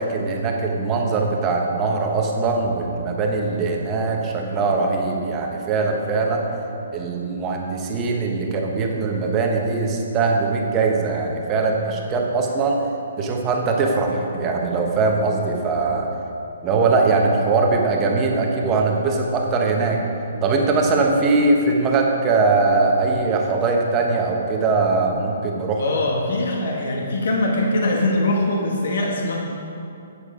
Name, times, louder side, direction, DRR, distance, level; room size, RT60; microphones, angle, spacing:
voice 1, 0.0-6.5 6.9-12.9 13.2-16.1 16.6-20.0 20.4-25.8, right 3 dB, 20° right, 0 dB, 1.0 m, -21 dB
voice 2, 25.8-29.4, left 1 dB, 65° left, 0 dB, 1.3 m, -22 dB
8.4 x 7.2 x 5.0 m, 2.7 s
hypercardioid pair, 165°, 0 cm